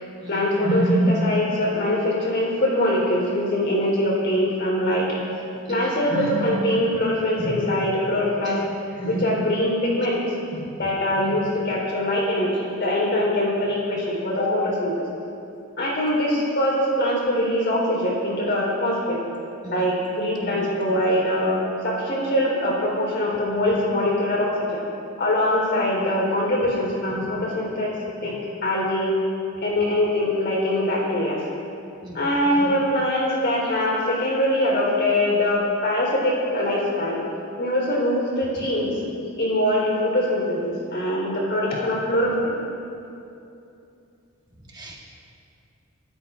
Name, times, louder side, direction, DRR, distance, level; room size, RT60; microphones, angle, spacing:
voice 1, 0.0-5.4 5.7-8.6 8.9-10.2 10.5-15.1 15.8-19.2 19.7-24.8 25.2-28.0 28.2-29.2 29.6-31.4 32.1-37.2 37.6-39.0 39.4-42.6, left 1 dB, 55° left, -3 dB, 4.0 m, -23 dB
voice 2, 44.7-45.0, equal, 20° right, -2 dB, 1.3 m, -37 dB
25.5 x 13.0 x 2.5 m, 2.7 s
head